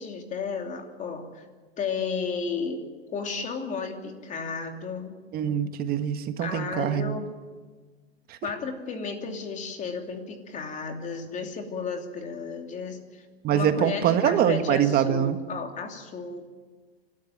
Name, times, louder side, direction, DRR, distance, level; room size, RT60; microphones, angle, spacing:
voice 1, 0.0-1.4 1.8-5.2 6.4-7.3 8.4-13.2 13.5-16.5, left 5 dB, 25° left, 4 dB, 2.9 m, -33 dB
voice 2, 5.3-7.2 8.3-8.4 13.4-15.4, right 9 dB, 30° right, 9 dB, 1.6 m, -24 dB
28.0 x 13.0 x 9.2 m, 1.4 s
hypercardioid pair, 120°, 30 cm